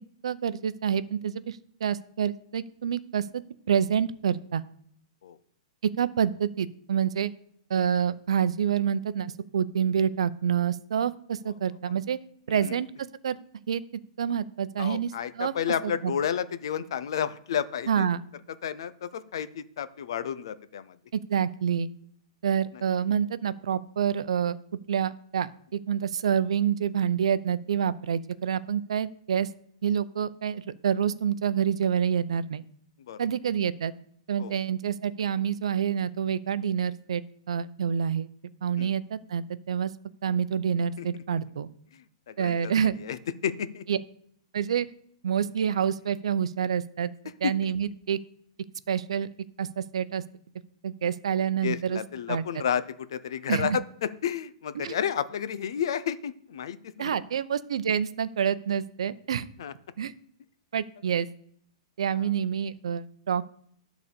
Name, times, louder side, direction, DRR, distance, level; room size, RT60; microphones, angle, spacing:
voice 1, 0.2-3.4 3.7-4.6 6.0-7.3 7.7-12.2 12.5-12.9 13.2-13.4 13.7-13.8 14.2-15.1 15.4-15.5 16.0-16.1 17.9-18.2 21.1-21.9 22.4-24.6 24.9-29.5 29.8-32.6 33.2-33.9 34.3-38.3 38.6-39.9 40.2-41.7 42.4-43.0 43.9-44.0 44.5-44.9 45.2-47.1 47.4-48.2 48.9-49.3 49.6-50.2 50.8-52.0 52.3-52.4 53.5-53.8 54.8-54.9 57.0-59.5 60.0-60.1 60.7-61.3 62.0-63.5, right 8 dB, 75° right, 15 dB, 0.6 m, -27 dB
voice 2, 12.5-12.8 14.8-18.1 18.6-21.0 22.7-22.8 33.1-33.2 34.4-34.6 38.8-38.9 41.0-41.2 41.9-43.2 43.4-43.9 47.4-47.5 51.6-57.2 59.6-59.7 62.2-62.3, left 8 dB, 50° left, 14 dB, 0.6 m, -31 dB
11.0 x 4.1 x 6.9 m, 0.64 s
hypercardioid pair, 180°, 3 cm